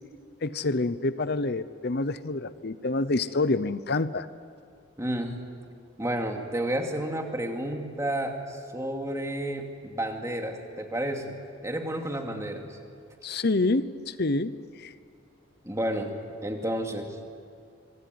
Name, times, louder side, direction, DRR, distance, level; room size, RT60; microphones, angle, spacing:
voice 1, 0.4-4.3 13.2-14.9, left 2 dB, 50° left, 14 dB, 0.8 m, -27 dB
voice 2, 5.0-5.3 6.0-11.4 11.6-12.8 15.6-16.2 16.4-17.1, right 1 dB, 15° right, 3 dB, 2.5 m, -31 dB
25.5 x 24.5 x 9.4 m, 2.3 s
head